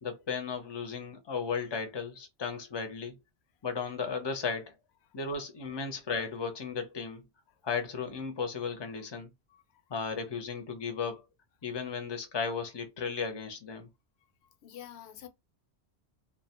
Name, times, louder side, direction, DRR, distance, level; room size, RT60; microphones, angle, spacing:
voice 1, 0.0-3.1 3.6-4.7 5.1-7.2 7.6-9.3 9.9-11.2 11.6-13.9, left 5 dB, 30° left, 0.5 m, -35 dB
voice 2, 9.5-9.8 14.6-15.3, left 11 dB, 75° left, 0.8 m, -48 dB
2.4 x 2.2 x 2.8 m
omnidirectional pair, 1.1 m